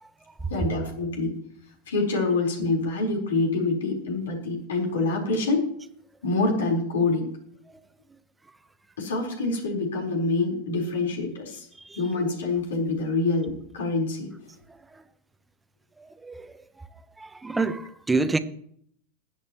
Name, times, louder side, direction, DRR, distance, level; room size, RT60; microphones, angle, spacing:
voice 1, 0.5-1.3 1.9-5.6 6.2-7.3 9.0-11.7 11.9-14.3, left 3 dB, 75° left, 4.2 m, -26 dB
voice 2, 17.2-18.4, right 3 dB, 10° right, 0.9 m, -27 dB
20.5 x 8.7 x 3.1 m
hypercardioid pair, 95°, 0 cm